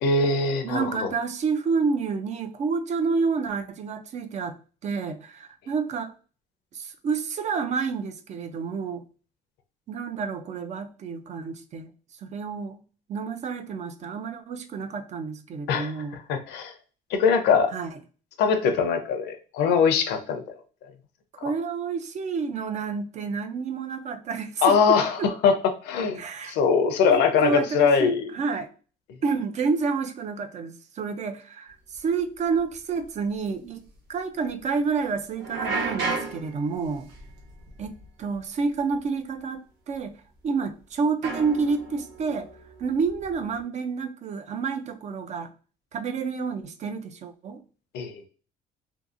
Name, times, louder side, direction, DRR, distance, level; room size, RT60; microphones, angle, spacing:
voice 1, 0.0-1.1 15.7-16.7 17.1-17.7 18.4-20.4 24.6-25.6 25.8-26.2 26.5-28.3 47.9-48.2, left 5 dB, 80° left, 8 dB, 0.6 m, -22 dB
voice 2, 0.6-4.6 4.8-6.1 6.7-9.0 9.9-11.9 12.2-12.8 13.1-16.2 17.7-18.0 21.4-25.3 26.2-26.6 27.1-28.7 29.2-33.8 34.1-37.1 37.8-40.2 40.4-42.5 42.8-45.5 45.9-47.6, right 5 dB, 45° right, 8 dB, 0.4 m, -29 dB
sound 1, 31.9-32.0 32.6-32.7 33.0-33.1 33.5-33.6 35.4-38.4 38.7-39.0 39.9-40.0 41.2-43.6, right 4 dB, 90° right, 0.9 m, -34 dB
2.7 x 2.7 x 2.4 m, 0.38 s
cardioid pair, 110°, 17 cm